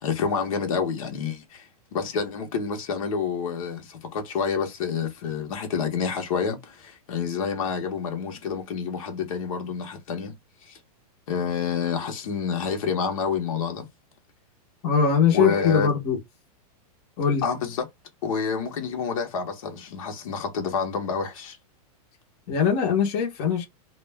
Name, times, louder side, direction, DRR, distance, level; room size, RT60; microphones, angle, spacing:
voice 1, 0.0-10.3 10.6-10.8 11.3-13.9 15.3-15.9 17.4-17.9 18.2-21.6, left 6 dB, 60° left, 0.9 m, -28 dB
voice 2, 14.8-16.2 17.2-17.5 22.5-23.7, left 6 dB, 30° left, 0.8 m, -21 dB
2.4 x 2.2 x 3.3 m
supercardioid pair, 165°, 20 cm